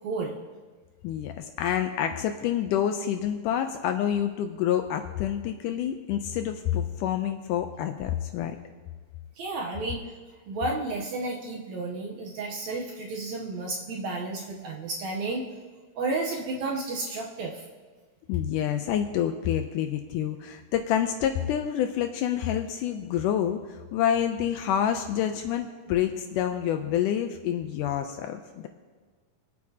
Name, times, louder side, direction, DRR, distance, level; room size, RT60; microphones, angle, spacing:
voice 1, 0.0-0.3 9.4-10.1 10.5-15.4 16.0-17.7, right 3 dB, 65° right, 0 dB, 1.9 m, -32 dB
voice 2, 1.0-8.6 18.3-28.7, left 10 dB, 80° left, 6 dB, 2.0 m, -28 dB
23.5 x 8.4 x 2.8 m, 1.4 s
omnidirectional pair, 4.1 m